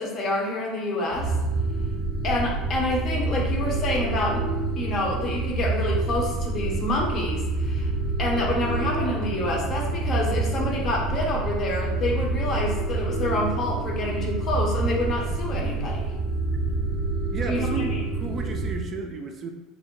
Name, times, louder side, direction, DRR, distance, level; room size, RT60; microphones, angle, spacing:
voice 1, 0.0-1.3 2.2-4.5 4.8-7.9 8.2-16.1 17.5-18.0, left 2 dB, 40° left, -1 dB, 0.7 m, -28 dB
sound 1, 1.1-18.9, right 3 dB, 75° left, 1.0 m, -27 dB
voice 2, 17.3-19.5, right 4 dB, 40° right, 4 dB, 0.3 m, -33 dB
2.6 x 2.0 x 2.9 m, 1.1 s
hypercardioid pair, 70°, 0 cm